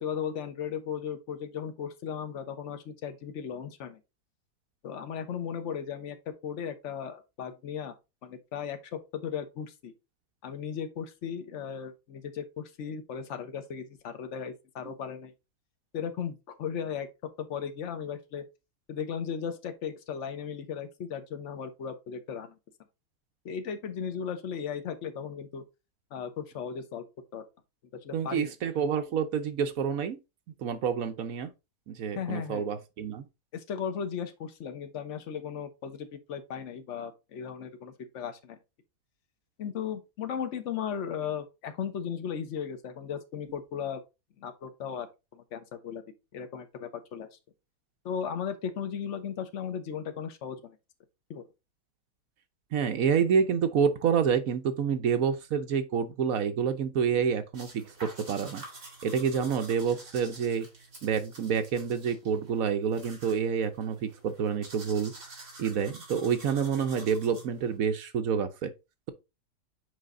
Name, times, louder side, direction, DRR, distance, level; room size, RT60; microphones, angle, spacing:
voice 1, 0.0-4.0 4.8-6.2 6.4-7.9 8.2-9.9 10.4-15.3 15.9-17.1 17.4-18.4 18.9-22.6 23.4-25.6 26.1-27.0 27.3-27.4 28.0-28.5 32.1-32.6 33.5-38.6 39.6-44.0 44.4-45.1 45.3-46.0 46.3-47.3 48.0-50.8 51.3-51.4, left 7 dB, 50° left, 1.2 m, -36 dB
voice 2, 28.1-30.2 30.6-31.5 31.9-33.2 52.7-58.6 59.0-60.7 61.0-65.1 65.6-68.7, right 7 dB, 65° right, 1.1 m, -28 dB
sound 1, 57.5-67.8, right 2 dB, 45° right, 2.9 m, -49 dB
6.7 x 4.7 x 3.7 m
omnidirectional pair, 1.7 m